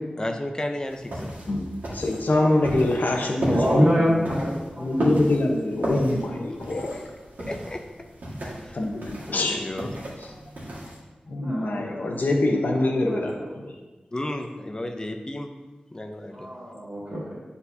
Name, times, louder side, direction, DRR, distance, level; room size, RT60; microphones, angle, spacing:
voice 1, 0.2-1.3 6.5-7.0 7.4-7.8 8.6-8.9 9.4-9.9 14.1-15.5 15.9-16.5, left 1 dB, 25° left, 4 dB, 0.5 m, -33 dB
sound 1, 0.9-11.0, right 1 dB, 80° right, 1.7 m, -33 dB
voice 2, 1.5-4.2 4.8-7.0 8.7-9.6 11.3-13.4 13.6-13.7, left 2 dB, 75° left, 1 dB, 0.9 m, -24 dB
voice 3, 3.4-5.1 11.4-12.0 12.7-13.5 16.3-17.3, equal, 30° right, -8 dB, 2.0 m, -26 dB
9.3 x 4.1 x 2.7 m, 1.2 s
wide cardioid pair, 95°, 3 cm